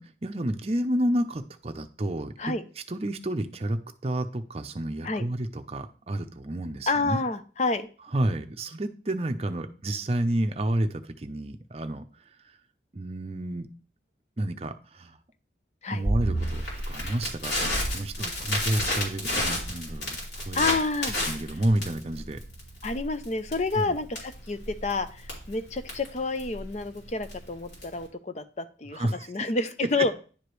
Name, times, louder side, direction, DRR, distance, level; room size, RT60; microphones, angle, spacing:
voice 1, 0.0-2.5 2.9-7.2 8.1-12.0 12.9-13.7 14.4-15.2 15.9-20.7 21.2-22.4 23.8-24.0 28.9-29.5 30.0-30.1, right 1 dB, 35° right, 8 dB, 0.6 m, -30 dB
voice 2, 6.9-7.9 15.8-16.0 17.0-17.1 20.5-21.2 22.8-30.1, left 3 dB, 40° left, 10 dB, 0.6 m, -29 dB
Crackle, 16.0-28.0, equal, 75° left, 3.3 m, -31 dB
10.5 x 4.9 x 3.1 m, 0.38 s
head